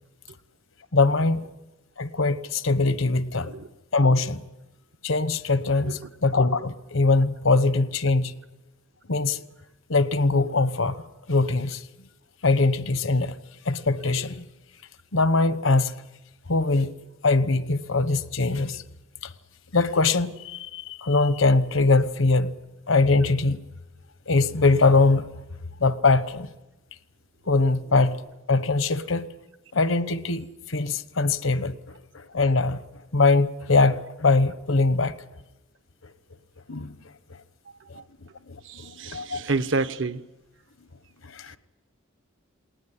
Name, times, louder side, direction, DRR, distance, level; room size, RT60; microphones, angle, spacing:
voice 1, 0.9-1.4 2.0-3.5 3.9-4.4 5.0-8.4 9.1-9.4 9.9-11.0 11.3-11.8 12.4-13.4 13.6-14.5 15.1-16.0 16.5-16.9 17.2-18.8 19.2-19.3 19.7-22.6 22.9-23.6 24.3-25.3 25.8-26.5 27.5-28.2 28.5-29.3 29.7-32.8 33.1-35.1 36.7-37.0 37.9-38.0 38.5-39.5 41.2-41.6, left 3 dB, 75° left, 1.1 m, -22 dB
voice 2, 38.6-40.2, right 3 dB, 60° right, 0.9 m, -29 dB
19.5 x 19.0 x 9.9 m
head